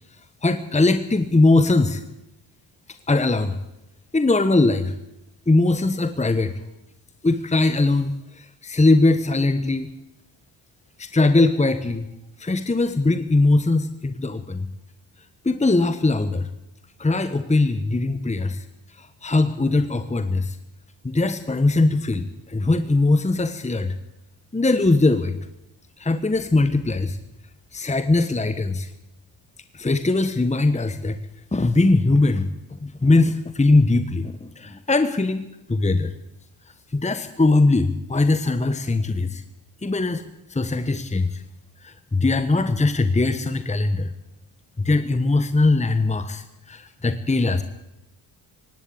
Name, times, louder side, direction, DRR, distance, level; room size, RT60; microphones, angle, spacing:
voice 1, 0.4-2.0 3.1-3.6 4.1-4.9 5.5-6.5 7.2-9.9 11.0-12.1 12.4-14.7 15.4-16.5 17.0-18.6 18.9-20.6 21.0-23.9 24.5-25.4 26.0-27.2 27.7-28.9 29.7-31.2 31.5-36.1 36.9-39.4 39.8-40.2 40.5-41.4 41.8-44.1 44.8-47.6, left 2 dB, 15° left, 10 dB, 1.4 m, -21 dB
19.0 x 16.5 x 8.7 m, 0.91 s
cardioid pair, 70°, 45 cm